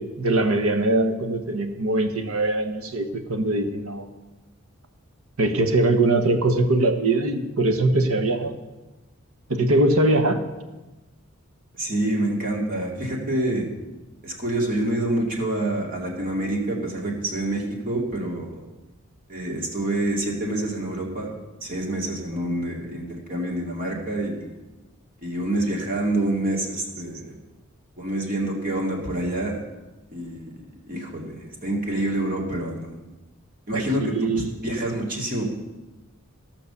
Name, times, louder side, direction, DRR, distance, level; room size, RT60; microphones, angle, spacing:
voice 1, 0.0-4.1 5.4-8.5 9.5-10.4 33.7-34.5, right 2 dB, 75° right, 7 dB, 1.2 m, -22 dB
voice 2, 11.8-13.7 14.2-18.6 19.3-21.4 21.6-24.5 25.2-27.3 28.0-29.6 30.1-30.5 30.9-33.0 33.7-35.5, right 1 dB, 40° right, -1 dB, 2.3 m, -27 dB
15.0 x 5.9 x 6.8 m, 1.1 s
head